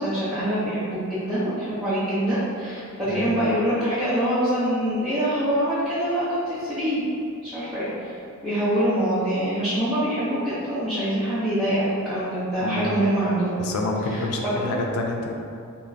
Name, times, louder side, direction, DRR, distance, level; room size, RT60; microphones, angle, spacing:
voice 1, 0.0-7.0 7.4-8.1 8.4-13.5 14.1-14.7, right 1 dB, ahead, -16 dB, 0.5 m, -25 dB
voice 2, 12.6-12.9 13.6-15.3, left 2 dB, 80° left, 2 dB, 0.3 m, -28 dB
2.3 x 2.1 x 3.8 m, 2.5 s
head